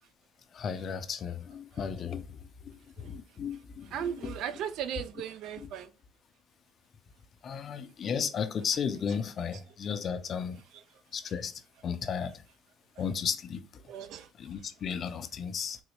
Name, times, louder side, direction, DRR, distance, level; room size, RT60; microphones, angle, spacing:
voice 1, 0.5-2.4 2.6-2.7 3.0-4.3 5.6-5.7 7.4-10.6 11.1-11.5 11.8-12.3 13.0-13.8 14.4-15.8, left 7 dB, 50° left, 0.5 m, -34 dB
voice 2, 3.9-5.9 13.9-14.3, right 9 dB, 70° right, 0.4 m, -36 dB
3.8 x 2.1 x 3.0 m
supercardioid pair, 90°, 0 cm